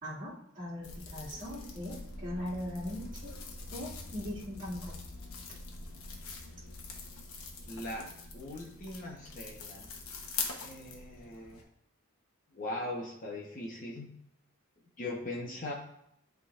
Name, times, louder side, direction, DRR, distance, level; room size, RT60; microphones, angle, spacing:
voice 1, 0.0-3.3 3.7-5.0 5.5-5.6, left 1 dB, 35° right, -11 dB, 2.2 m, -40 dB
sound 1, 0.8-11.6, left 4 dB, 85° left, 1.1 m, -43 dB
voice 2, 7.7-8.0 8.3-9.9 10.6-11.6 12.5-14.1 15.0-15.7, left 1 dB, 40° left, -2 dB, 1.1 m, -40 dB
11.5 x 3.8 x 2.5 m, 0.74 s
head